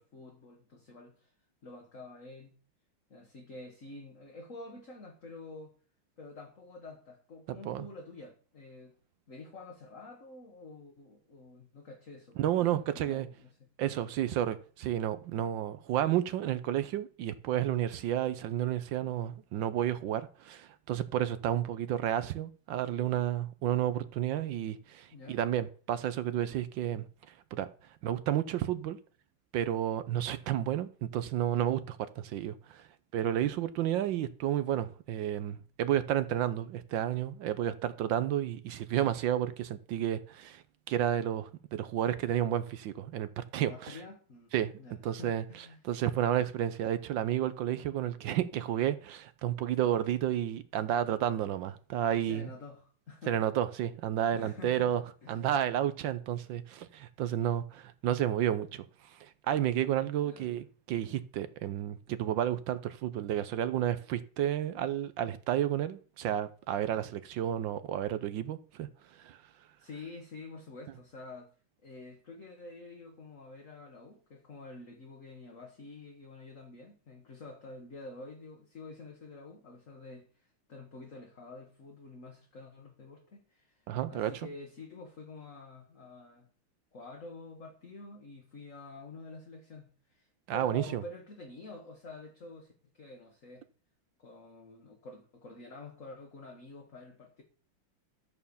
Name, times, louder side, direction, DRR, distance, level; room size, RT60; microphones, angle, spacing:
voice 1, 0.0-1.3 1.6-2.5 3.1-5.7 6.2-8.9 9.3-13.5 25.1-25.4 43.6-44.5 44.8-45.8 52.2-53.4 54.3-55.5 60.2-60.5 69.8-71.5 71.8-86.5 86.9-93.7 94.2-97.4, left 3 dB, 40° left, 1.7 m, -48 dB
voice 2, 12.4-13.3 13.8-27.0 27.5-27.7 28.0-29.0 29.5-32.9 33.1-44.0 44.5-44.7 45.0-52.5 53.3-55.0 55.3-68.9 69.2-69.4 83.9-84.3 90.5-91.0, right 11 dB, 70° right, 1.2 m, -31 dB
12.5 x 4.5 x 7.0 m
omnidirectional pair, 2.4 m